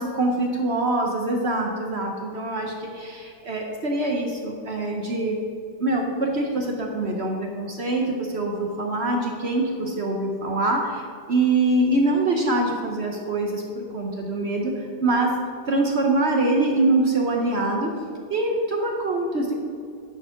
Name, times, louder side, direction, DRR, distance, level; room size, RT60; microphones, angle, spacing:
voice 1, 0.0-5.4 5.8-15.4 15.7-18.0 18.3-19.5, right 2 dB, 50° right, 1 dB, 0.8 m, -24 dB
9.8 x 4.7 x 5.7 m, 2.3 s
omnidirectional pair, 1.9 m